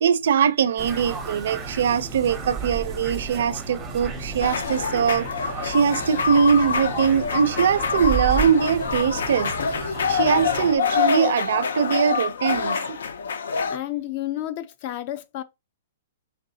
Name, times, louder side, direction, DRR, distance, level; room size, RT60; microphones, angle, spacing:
voice 1, 0.0-9.5 10.1-13.0, right 7 dB, 60° right, 0.4 m, -22 dB
sound 1, 0.8-10.7, right 4 dB, 10° right, 0.6 m, -33 dB
sound 2, 4.4-13.8, left 6 dB, 90° left, 0.6 m, -26 dB
voice 2, 13.7-15.4, left 13 dB, 30° left, 0.4 m, -31 dB
3.8 x 3.4 x 2.7 m
hypercardioid pair, 170°, 0 cm